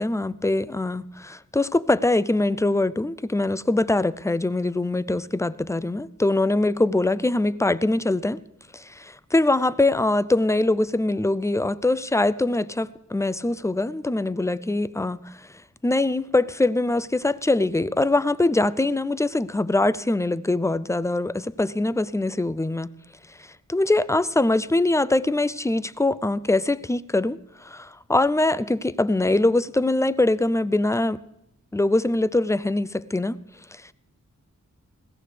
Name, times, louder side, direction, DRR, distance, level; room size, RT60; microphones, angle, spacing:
voice 1, 0.0-8.4 8.7-15.5 15.8-22.9 23.4-31.2 31.7-33.4 33.7-33.9, left 2 dB, 10° left, 0.4 m, -23 dB
21.0 x 16.0 x 3.4 m
wide cardioid pair, 60°, 32 cm